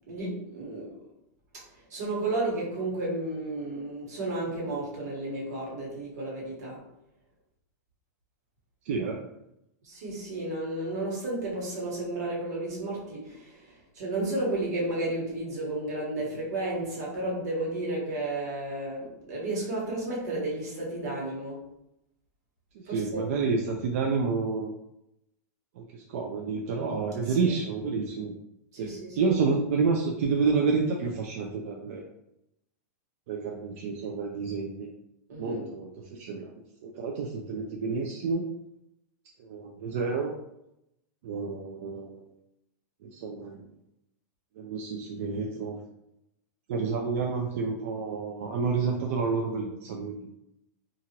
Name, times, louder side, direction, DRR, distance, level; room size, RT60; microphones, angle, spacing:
voice 1, 0.1-1.0 1.5-6.8 9.8-21.7 22.9-23.2 27.3-27.5 28.7-29.3 35.3-35.7, right 2 dB, 70° right, -3 dB, 1.2 m, -33 dB
voice 2, 8.9-9.2 22.9-24.7 25.8-28.3 28.8-28.9 29.2-32.0 33.3-34.9 35.4-36.5 36.8-38.4 39.4-40.3 41.2-42.2 43.0-43.7 44.6-45.8 46.7-50.3, right 4 dB, 50° right, 0 dB, 0.3 m, -29 dB
2.8 x 2.5 x 2.8 m, 0.84 s
supercardioid pair, 165°, 9 cm